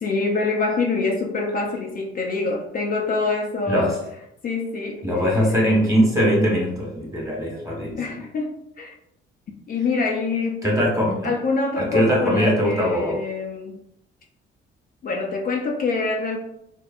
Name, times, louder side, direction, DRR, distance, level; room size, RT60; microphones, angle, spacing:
voice 1, 0.0-4.0 4.4-5.5 8.0-8.9 9.7-10.6 11.2-13.8 15.0-16.4, left 3 dB, 45° left, 1 dB, 0.4 m, -25 dB
voice 2, 5.0-8.0 10.6-11.3 11.8-13.2, equal, 15° right, -3 dB, 1.3 m, -21 dB
3.4 x 2.1 x 2.4 m, 0.79 s
cardioid pair, 90°, 20 cm